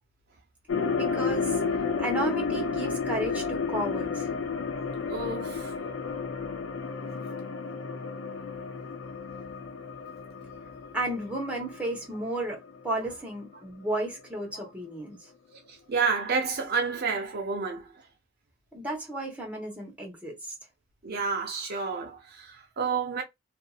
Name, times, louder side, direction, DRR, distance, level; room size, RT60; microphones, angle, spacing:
sound 1, 0.7-13.0 13.2-13.3, left 5 dB, 75° left, 0.5 m, -32 dB
voice 1, 1.0-4.3 10.9-15.2 18.7-20.5, right 1 dB, 5° right, 1.0 m, -33 dB
voice 2, 5.1-5.7 14.5-14.7 15.7-17.9 21.0-23.2, right 5 dB, 50° right, 0.6 m, -30 dB
2.6 x 2.6 x 2.3 m
head